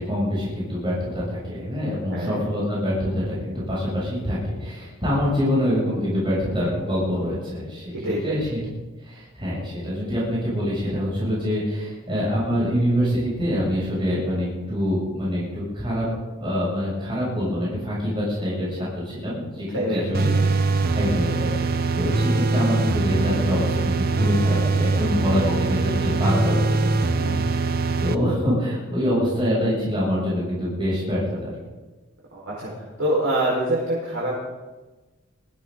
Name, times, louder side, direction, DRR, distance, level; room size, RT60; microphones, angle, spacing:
voice 1, 0.0-7.9 8.2-8.6 9.0-16.1 16.4-19.7 19.9-27.7 28.0-31.5, equal, 25° right, -7 dB, 7.3 m, -25 dB
voice 2, 2.1-2.4 7.9-8.4 19.7-20.2 25.4-25.7 32.3-34.4, right 1 dB, 85° right, -6 dB, 4.9 m, -26 dB
sound 1, 20.1-28.2, right 3 dB, 50° right, 0.7 m, -22 dB
22.5 x 15.5 x 4.0 m, 1.2 s
head